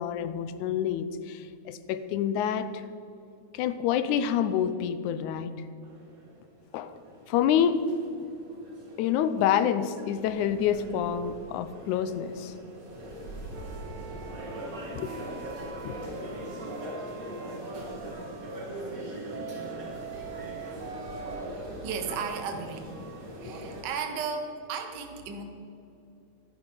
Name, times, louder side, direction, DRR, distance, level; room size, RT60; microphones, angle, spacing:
voice 1, 0.0-2.8 3.5-5.6 6.7-6.9 7.3-7.9 9.0-12.5 15.0-15.1 15.8-15.9, left 9 dB, 85° left, 13 dB, 2.1 m, -27 dB
sound 1, 5.8-23.8, right 1 dB, 30° right, 2.1 m, -41 dB
sound 2, 13.5-18.6 19.3-21.4, right 7 dB, 90° right, 2.3 m, -44 dB
voice 2, 21.5-23.0 23.4-25.4, right 5 dB, 60° right, 5 dB, 1.1 m, -35 dB
11.5 x 11.0 x 5.5 m, 2.6 s
omnidirectional pair, 3.4 m